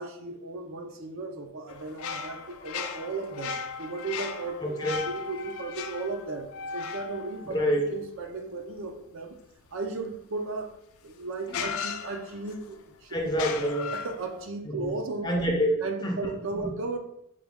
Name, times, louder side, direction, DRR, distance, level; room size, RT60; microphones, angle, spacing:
voice 1, 0.0-4.8 5.1-6.5 6.7-7.5 7.9-9.4 9.7-10.7 11.0-13.1 13.6-15.4 15.8-17.0, right 3 dB, 65° right, 5 dB, 0.5 m, -35 dB
sound 1, 1.7-8.3 10.6-10.7 11.5-12.7 13.3-14.5, left 6 dB, 80° left, 0.4 m, -37 dB
voice 2, 4.6-5.0 7.5-7.9 11.6-11.7 13.1-13.9 14.7-14.9 15.2-16.4 16.6-16.7, equal, 20° left, 1 dB, 0.5 m, -27 dB
4.8 x 2.3 x 3.5 m, 0.77 s
head